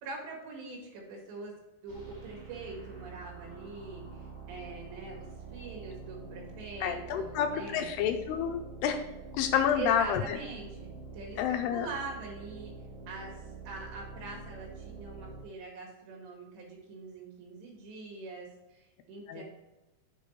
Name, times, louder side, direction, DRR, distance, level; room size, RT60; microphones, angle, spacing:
voice 1, 0.0-1.5 1.8-4.0 4.5-5.3 5.5-8.1 9.7-12.7 13.1-13.3 13.7-19.4, right 3 dB, 85° right, 0 dB, 4.2 m, -43 dB
sound 1, 1.9-15.4, right 4 dB, 35° right, 1.0 m, -46 dB
voice 2, 6.8-9.0 9.3-10.4 11.4-11.9 19.3-19.4, left 8 dB, 80° left, 6 dB, 2.5 m, -29 dB
7.3 x 5.4 x 4.6 m, 0.99 s
omnidirectional pair, 4.9 m